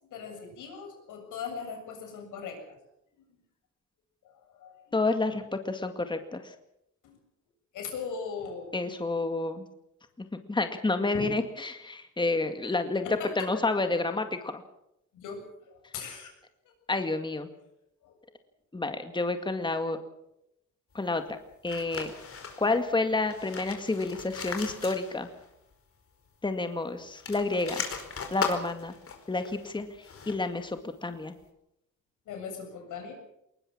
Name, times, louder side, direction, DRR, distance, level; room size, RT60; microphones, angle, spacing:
voice 1, 0.1-2.8 3.3-3.4 4.6-4.8 7.0-7.2 7.7-8.9 11.1-11.4 13.0-13.5 15.2-16.3 18.0-18.2 32.3-33.1, left 5 dB, 85° left, 4 dB, 7.4 m, -39 dB
voice 2, 4.9-6.5 8.7-9.7 10.3-13.1 13.4-14.6 16.9-17.5 18.7-20.0 20.9-21.4 21.6-22.1 22.6-25.3 26.4-27.8 28.3-28.9 29.3-29.9 30.3-31.3, left 3 dB, 15° left, 7 dB, 2.0 m, -29 dB
sound 1, 21.7-22.8 23.2-25.5 25.7-25.8 27.0-30.6, left 5 dB, 45° left, 4.9 m, -38 dB
20.5 x 20.5 x 7.3 m, 0.82 s
cardioid pair, 90°, 30 cm